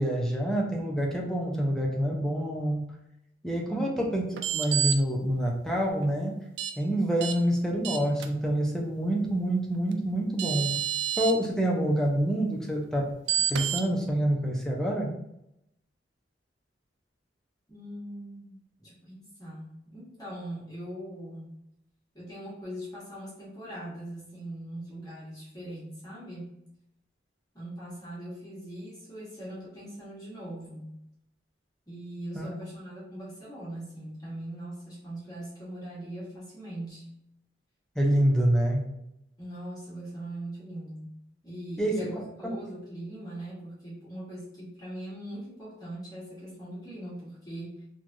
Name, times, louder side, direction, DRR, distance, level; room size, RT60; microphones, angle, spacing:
voice 1, 0.0-2.8 3.4-4.2 4.5-6.4 6.8-10.8 11.2-13.1 13.5-15.1 32.3-32.5 38.0-38.9 41.8-42.5, right 1 dB, 5° left, -2 dB, 0.4 m, -27 dB
voice 2, 3.7-4.0 17.7-21.5 22.1-26.5 27.5-30.9 31.9-37.1 39.4-41.1 41.4-47.8, right 1 dB, 20° left, -8 dB, 1.0 m, -41 dB
sound 1, 4.4-5.0 6.6-6.7 7.2-7.3 7.8-8.3 9.9-10.0 10.4-11.3 13.3-13.8, right 9 dB, 75° right, 0.3 m, -28 dB
3.1 x 2.2 x 2.5 m, 0.82 s
head